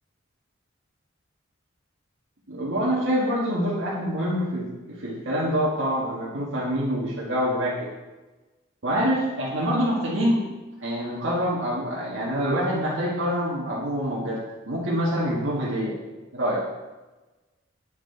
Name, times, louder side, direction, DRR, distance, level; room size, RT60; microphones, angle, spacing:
voice 1, 2.5-7.9 8.8-15.9 16.3-16.6, equal, 80° right, -6 dB, 1.6 m, -26 dB
8.8 x 6.1 x 4.5 m, 1.2 s
head